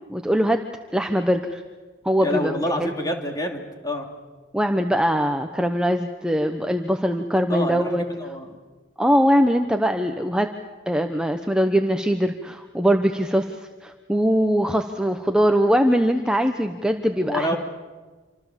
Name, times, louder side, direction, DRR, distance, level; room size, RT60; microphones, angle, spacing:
voice 1, 0.1-0.6 0.9-1.6 2.0-2.9 4.5-8.0 9.0-10.5 10.9-17.6, equal, 5° right, 5 dB, 0.9 m, -21 dB
voice 2, 2.2-4.1 7.5-8.5 17.2-17.6, left 1 dB, 20° left, 3 dB, 2.9 m, -27 dB
27.5 x 25.5 x 7.4 m, 1.3 s
head